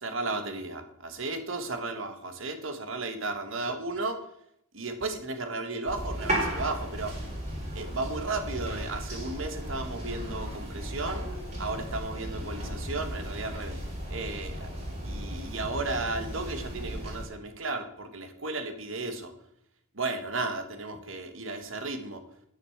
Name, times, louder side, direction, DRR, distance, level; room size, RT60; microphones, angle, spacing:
voice 1, 0.0-4.3 4.7-7.2 7.7-11.3 11.6-13.8 14.1-14.7 15.0-19.3 19.9-22.2, right 3 dB, 70° right, 7 dB, 1.6 m, -34 dB
sound 1, 5.9-17.3, right 1 dB, 30° right, 4.2 m, -35 dB
9.9 x 6.6 x 7.2 m, 0.74 s
head